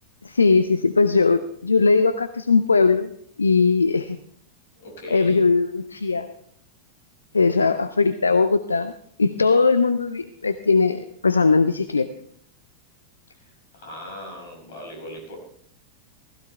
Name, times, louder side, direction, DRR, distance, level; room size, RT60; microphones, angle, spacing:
voice 1, 0.2-3.1 3.4-4.2 5.1-6.3 7.3-8.9 9.2-12.1, left 4 dB, 75° left, 12 dB, 0.5 m, -19 dB
voice 2, 4.8-5.4 13.4-15.4, equal, 55° left, 0 dB, 6.1 m, -39 dB
15.5 x 15.5 x 3.3 m, 0.65 s
figure-of-eight pair, 90°, 0 cm